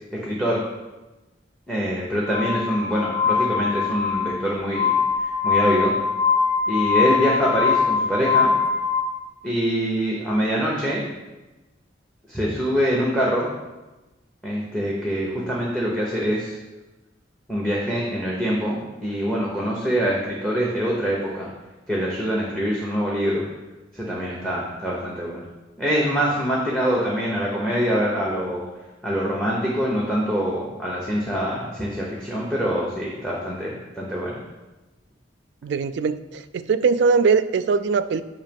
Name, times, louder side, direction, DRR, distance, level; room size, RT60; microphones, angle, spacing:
voice 1, 0.2-0.6 1.7-4.9 5.2-5.9 6.7-8.5 9.4-11.0 12.3-13.5 14.4-16.6 17.5-21.5 21.9-23.4 23.9-25.4 25.8-28.6 29.0-34.4, equal, 5° left, -4 dB, 0.8 m, -24 dB
Glass, 2.3-9.0, left 5 dB, 50° left, 1.5 m, -22 dB
voice 2, 35.6-38.2, right 5 dB, 65° right, 11 dB, 0.3 m, -21 dB
8.2 x 2.9 x 5.2 m, 1.1 s
head